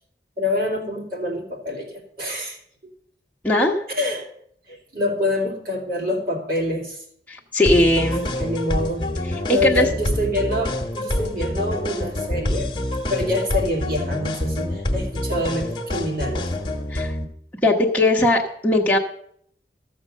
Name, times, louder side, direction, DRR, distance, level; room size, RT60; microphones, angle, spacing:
voice 1, 0.4-2.6 3.9-4.3 4.7-7.0 8.2-9.0 9.4-12.7 13.1-16.5, left 1 dB, 55° right, 0 dB, 2.5 m, -26 dB
voice 2, 3.4-3.8 7.3-8.2 9.6-9.9 16.9-17.1 17.6-19.0, left 1 dB, 10° left, -3 dB, 1.1 m, -19 dB
sound 1, 7.7-17.3, left 1 dB, 25° left, 1.3 m, -26 dB
14.0 x 6.6 x 6.4 m, 0.68 s
head